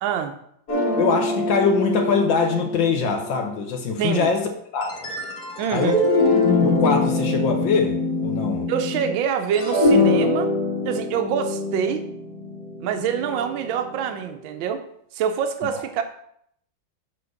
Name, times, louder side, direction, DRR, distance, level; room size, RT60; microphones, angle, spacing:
voice 1, 0.0-0.4 4.0-4.3 5.6-6.0 8.7-10.5 10.8-12.0 12.8-14.8 15.1-16.0, right 8 dB, 80° right, 7 dB, 1.4 m, -25 dB
sound 1, 0.7-3.8 4.8-9.1 9.4-13.6, left 2 dB, 55° left, 1.8 m, -23 dB
voice 2, 1.0-4.5 4.7-4.9 5.7-6.0 6.6-8.0 8.2-8.7 15.7-15.8, left 5 dB, 75° left, 2 dB, 1.6 m, -23 dB
5.7 x 4.3 x 6.2 m, 0.70 s
omnidirectional pair, 2.1 m